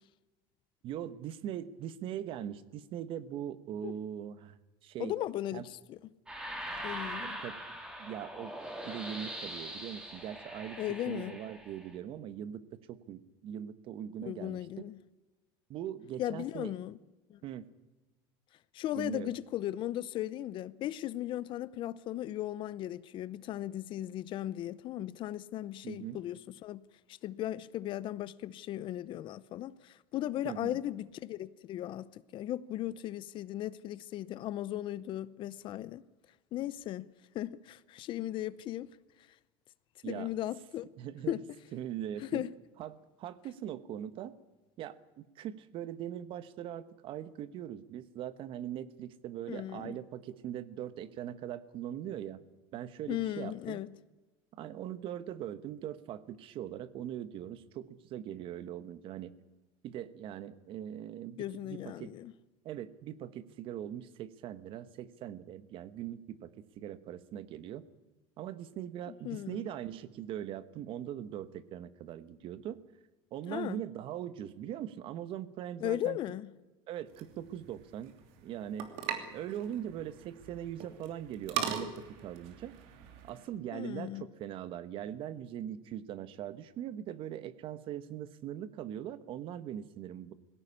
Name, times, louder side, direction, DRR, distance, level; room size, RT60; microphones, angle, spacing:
voice 1, 0.8-5.1 5.5-5.7 7.2-7.6 8.0-8.5 8.8-10.8 11.1-14.7 15.7-16.7 17.4-17.7 18.9-19.3 25.8-26.2 30.4-30.8 40.0-40.3 41.0-41.4 41.7-42.4 42.8-44.3 44.8-52.4 52.7-53.8 54.6-59.3 59.8-61.4 61.6-62.1 62.6-67.8 68.4-72.8 73.3-76.2 76.9-78.1 78.4-78.9 79.3-82.7 83.2-90.3, right 10 dB, 50° right, 1.2 m, -41 dB
voice 2, 5.0-6.0 6.8-7.4 10.8-11.4 14.2-15.0 16.2-17.0 17.3-17.4 18.7-26.8 27.2-36.0 36.5-37.1 37.3-38.9 40.0-40.9 41.3-41.5 42.2-42.5 49.5-50.0 53.1-53.9 61.4-62.3 69.2-69.7 73.5-73.8 75.8-76.5 83.7-84.3, left 13 dB, 45° left, 0.7 m, -37 dB
sound 1, 6.3-11.9, right 1 dB, 5° right, 3.4 m, -42 dB
sound 2, 77.1-83.5, right 8 dB, 70° right, 2.9 m, -41 dB
19.5 x 17.0 x 9.9 m
cardioid pair, 140°, 12 cm